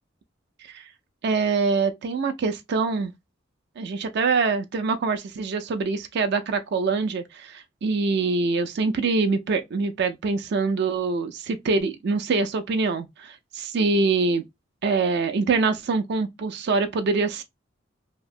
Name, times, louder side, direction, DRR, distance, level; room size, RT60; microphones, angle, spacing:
voice 1, 1.2-3.1 3.8-14.5 14.8-17.4, right 4 dB, 60° right, 0.4 m, -24 dB
2.8 x 2.0 x 2.4 m
head